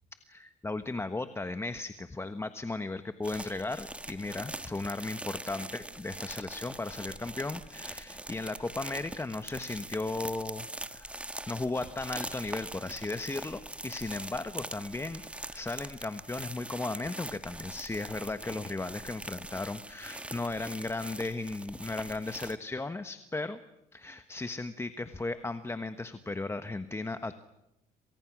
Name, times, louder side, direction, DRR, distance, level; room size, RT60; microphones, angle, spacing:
voice 1, 0.3-11.1 11.5-15.2 15.5-23.6 23.9-27.4, left 2 dB, 15° left, 10 dB, 1.3 m, -36 dB
sound 1, 3.2-22.6, right 1 dB, 5° right, 1.5 m, -43 dB
28.0 x 27.0 x 6.2 m, 0.85 s
cardioid pair, 110°, 17 cm